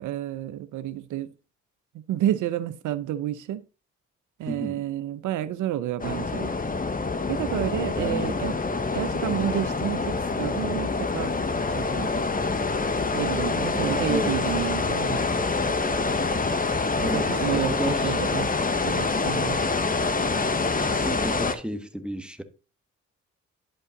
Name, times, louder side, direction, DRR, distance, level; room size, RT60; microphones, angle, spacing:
voice 1, 0.0-1.3 2.1-3.6 4.4-6.5 7.3-8.5 8.9-11.4 11.7-12.3 13.1-15.2 17.0-18.5 18.8-19.6, right 12 dB, 75° right, 0.6 m, -30 dB
voice 2, 4.4-4.8 8.0-8.4 13.7-14.4 17.0-18.1 20.8-22.4, equal, 5° right, 1.3 m, -32 dB
sound 1, 6.0-21.5, left 3 dB, 30° left, 1.1 m, -26 dB
10.5 x 5.5 x 3.7 m
supercardioid pair, 55°, 30 cm